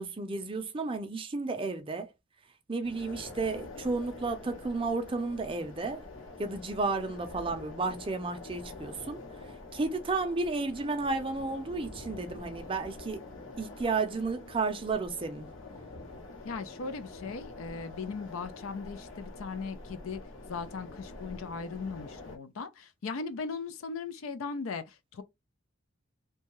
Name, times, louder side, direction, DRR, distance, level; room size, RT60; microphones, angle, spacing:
voice 1, 0.0-2.1 2.7-6.0 6.4-9.2 9.7-13.2 13.6-15.5, right 3 dB, 25° right, 0.5 m, -32 dB
sound 1, 2.8-22.4, left 2 dB, 70° left, 0.9 m, -46 dB
voice 2, 16.4-20.2 20.5-25.2, left 4 dB, 85° left, 0.5 m, -38 dB
2.7 x 2.3 x 3.0 m
head